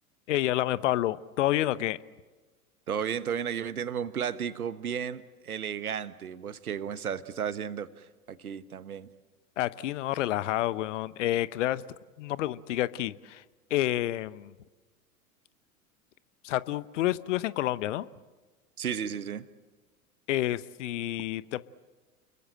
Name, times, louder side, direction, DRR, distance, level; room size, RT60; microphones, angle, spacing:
voice 1, 0.3-2.0 9.6-11.8 12.2-13.4 13.7-14.5 16.4-18.1 20.3-21.6, left 14 dB, 55° left, 18 dB, 1.0 m, -29 dB
voice 2, 2.9-9.1 18.8-19.5, right 8 dB, 75° right, 14 dB, 1.3 m, -34 dB
29.5 x 22.0 x 7.6 m, 1.3 s
figure-of-eight pair, 90°, 44 cm